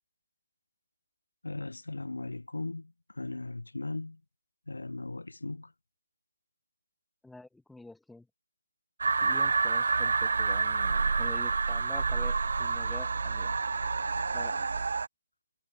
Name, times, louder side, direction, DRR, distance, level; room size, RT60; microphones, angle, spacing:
voice 1, 1.4-4.2 4.7-5.7, left 2 dB, 65° left, 3.9 m, -38 dB
voice 2, 7.2-8.3 9.2-13.5 14.3-14.7, left 2 dB, ahead, 1.6 m, -47 dB
sound 1, 9.0-15.1, right 4 dB, 40° right, 0.9 m, -28 dB
figure-of-eight pair, 170°, 0 cm